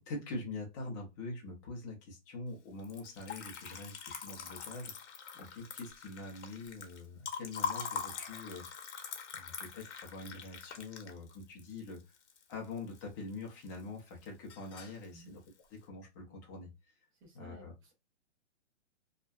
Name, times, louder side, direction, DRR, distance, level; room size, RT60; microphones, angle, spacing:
voice 1, 0.0-8.8 9.3-12.0 12.5-15.4 15.7-16.9 17.3-17.7, left 3 dB, 15° left, 0.4 m, -44 dB
Liquid, 2.8-13.0 13.3-14.0 14.2-15.0, left 6 dB, 70° left, 0.8 m, -43 dB
voice 2, 17.1-17.9, equal, 25° right, 0.7 m, -56 dB
2.6 x 2.2 x 2.2 m
hypercardioid pair, 150°, 35 cm